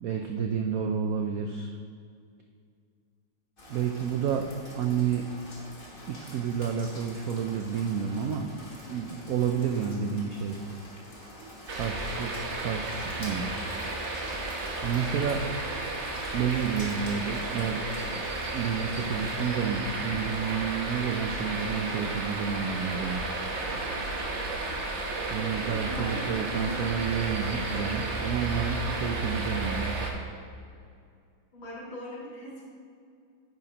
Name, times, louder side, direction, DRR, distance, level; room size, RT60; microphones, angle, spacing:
voice 1, 0.0-1.7 3.7-4.5 4.8-5.3 6.1-8.5 8.9-10.6 11.7-13.6 14.8-15.4 16.3-18.2 18.5-23.2 25.3-29.9, right 7 dB, 85° right, 4 dB, 0.7 m, -30 dB
Rain, 3.6-19.4, equal, 30° left, 1.6 m, -47 dB
sound 1, 11.7-30.1, right 2 dB, 45° right, 1.1 m, -33 dB
voice 2, 25.4-26.9 31.5-32.7, left 1 dB, 85° left, -5 dB, 3.1 m, -40 dB
10.0 x 9.0 x 2.9 m, 2.2 s
omnidirectional pair, 2.2 m